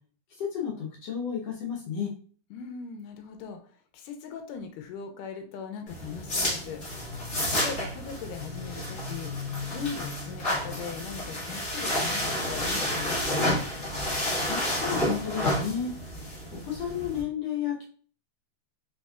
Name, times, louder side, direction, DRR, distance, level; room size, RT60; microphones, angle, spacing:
voice 1, 0.4-2.1 14.5-16.1 16.5-17.8, left 8 dB, 70° left, -3 dB, 1.6 m, -32 dB
voice 2, 2.5-3.6 3.9-6.8 7.5-9.3 9.7-13.2, left 6 dB, 85° left, 5 dB, 2.2 m, -39 dB
sound 1, 5.9-17.2, left 1 dB, 50° left, 0.8 m, -30 dB
4.3 x 4.2 x 2.3 m, 0.43 s
omnidirectional pair, 3.8 m